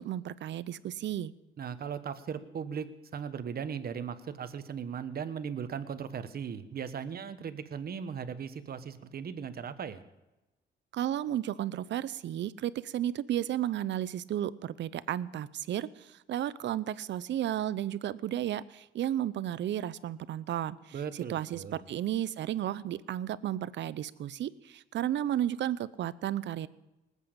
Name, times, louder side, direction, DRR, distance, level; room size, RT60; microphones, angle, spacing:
voice 1, 0.0-1.3 10.9-26.7, right 11 dB, 65° right, 18 dB, 0.6 m, -33 dB
voice 2, 1.6-10.0 20.9-21.8, right 7 dB, 50° right, 11 dB, 1.2 m, -38 dB
19.5 x 8.3 x 7.3 m, 1.0 s
cardioid pair, 90°, 20 cm